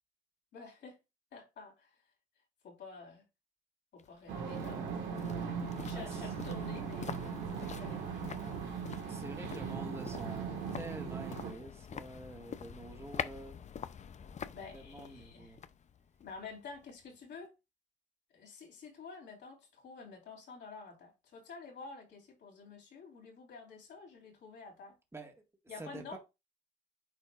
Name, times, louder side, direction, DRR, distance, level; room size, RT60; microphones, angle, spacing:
voice 1, 0.5-1.0 1.3-1.9 2.6-3.2 3.9-8.4 14.5-15.6 16.2-17.5 18.3-24.9 25.7-26.2, left 4 dB, 65° left, 3.3 m, -50 dB
sound 1, 4.0-17.2 17.4-17.5, left 7 dB, 40° left, 0.5 m, -46 dB
sound 2, 4.3-11.5, right 6 dB, 75° right, 1.6 m, -39 dB
voice 2, 9.1-13.6 14.7-15.6 25.1-25.3 25.8-26.2, right 2 dB, 15° right, 1.7 m, -47 dB
9.1 x 4.4 x 2.4 m
hypercardioid pair, 55°, 19 cm